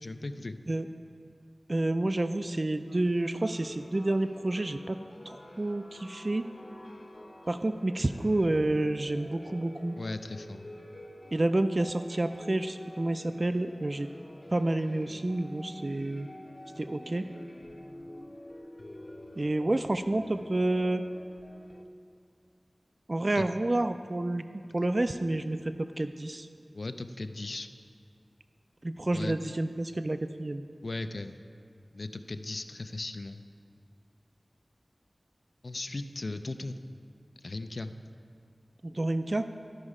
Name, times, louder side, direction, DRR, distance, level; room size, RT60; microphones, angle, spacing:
voice 1, 0.0-0.6 10.0-10.7 23.3-23.4 26.7-27.7 29.1-29.4 30.8-31.4 31.9-33.4 35.6-36.8 37.4-37.9, left 2 dB, 65° left, 9 dB, 0.4 m, -37 dB
voice 2, 1.7-5.0 5.3-6.4 7.5-10.0 11.3-14.1 14.5-16.3 16.8-17.2 19.4-21.0 23.1-24.5 24.7-26.5 28.8-30.7 38.8-39.5, right 2 dB, 45° right, 10 dB, 0.3 m, -29 dB
sound 1, 2.9-21.8, left 1 dB, 40° left, 0.7 m, -48 dB
13.0 x 5.3 x 4.8 m, 2.4 s
wide cardioid pair, 45°, 0 cm